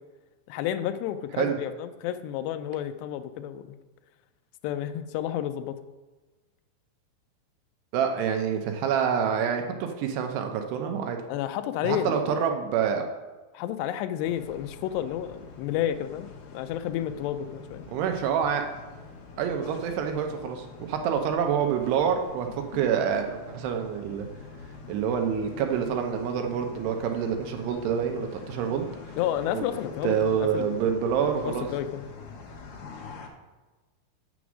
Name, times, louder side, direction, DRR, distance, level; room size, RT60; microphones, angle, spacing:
voice 1, 0.5-3.8 4.6-5.8 11.3-12.3 13.5-17.8 29.2-30.8 31.4-32.0, left 11 dB, 80° left, 10 dB, 2.5 m, -31 dB
voice 2, 7.9-11.2 11.8-13.1 17.9-18.7 19.4-24.3 24.9-28.9 29.5-29.6 30.0-31.7, right 7 dB, 75° right, 5 dB, 2.7 m, -27 dB
sound 1, 14.2-33.3, left 5 dB, 65° left, 2.2 m, -45 dB
7.9 x 7.0 x 6.1 m, 1.2 s
omnidirectional pair, 5.2 m